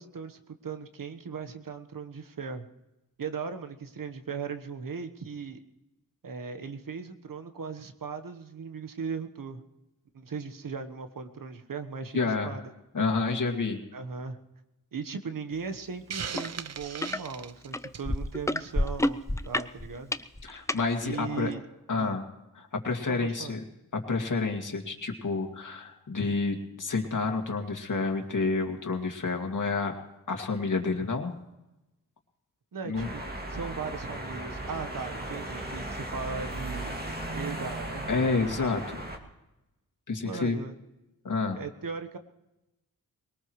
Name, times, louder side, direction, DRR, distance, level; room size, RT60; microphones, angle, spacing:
voice 1, 0.0-2.7 3.2-5.6 6.2-9.6 10.1-12.6 13.9-14.4 14.9-20.1 21.0-21.6 22.0-22.2 23.1-23.6 32.7-33.2 33.5-38.1 40.2-40.7 41.6-42.2, right 5 dB, 65° right, 8 dB, 1.3 m, -38 dB
voice 2, 12.1-12.6 12.9-13.8 20.4-21.5 21.9-22.2 22.6-23.6 23.9-29.9 30.3-31.3 32.8-33.1 38.1-39.0 40.1-40.6 41.2-41.6, left 4 dB, 55° left, 3 dB, 2.3 m, -29 dB
Hiss, 16.1-18.2, right 7 dB, 45° right, 0.6 m, -38 dB
sound 1, 16.3-16.5 16.8-17.2 17.7-20.8 21.5-21.6, left 1 dB, 10° left, 0.5 m, -29 dB
sound 2, 32.9-39.2, right 1 dB, 25° right, 2.3 m, -36 dB
21.5 x 19.0 x 3.2 m, 0.99 s
cardioid pair, 65°, 36 cm